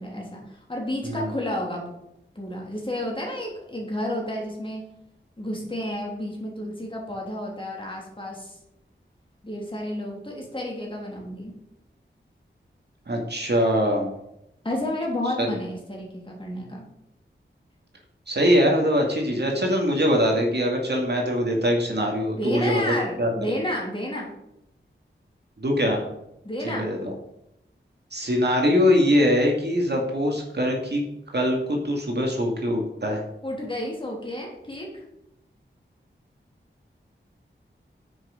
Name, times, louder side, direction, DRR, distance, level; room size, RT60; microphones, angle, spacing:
voice 1, 0.0-1.8 2.3-4.8 5.4-8.6 9.4-11.5 14.6-16.9 22.4-24.3 26.4-26.9 33.4-35.0, left 1 dB, 25° left, -2 dB, 3.0 m, -31 dB
voice 2, 13.1-14.1 15.4-15.5 18.3-22.8 23.2-23.3 25.6-26.1 26.6-27.1 28.1-31.0 31.3-33.2, equal, 55° right, 1 dB, 2.1 m, -22 dB
9.3 x 6.3 x 5.1 m, 0.82 s
wide cardioid pair, 85°, 20 cm